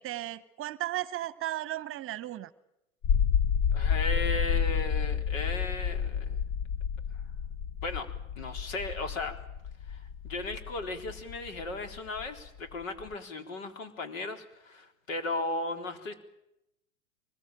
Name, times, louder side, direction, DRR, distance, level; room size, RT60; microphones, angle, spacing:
voice 1, 0.0-2.5, right 15 dB, 30° right, 16 dB, 1.1 m, -35 dB
sound 1, 3.0-13.1, left 7 dB, 40° left, 1.0 m, -30 dB
voice 2, 3.7-6.4 7.8-8.1 8.4-9.3 9.9-10.0 10.2-16.1, left 2 dB, 70° left, 6 dB, 4.0 m, -36 dB
24.0 x 21.0 x 9.0 m, 0.87 s
hypercardioid pair, 105°, 42 cm